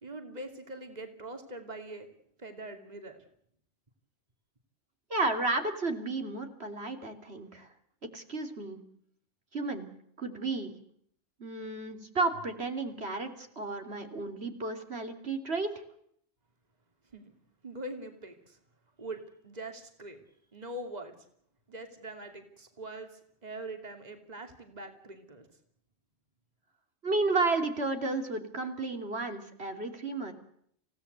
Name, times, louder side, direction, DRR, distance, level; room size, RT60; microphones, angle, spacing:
voice 1, 0.0-2.1 2.4-3.2 17.1-17.3 17.6-18.6 19.0-20.2 20.5-21.2 21.7-25.5, right 1 dB, 40° right, 5 dB, 2.8 m, -43 dB
voice 2, 5.1-7.7 8.1-8.8 9.5-9.9 10.2-10.7 11.4-15.8 27.0-30.3, right 3 dB, 70° right, 5 dB, 3.3 m, -32 dB
28.0 x 17.5 x 8.1 m, 0.69 s
omnidirectional pair, 1.1 m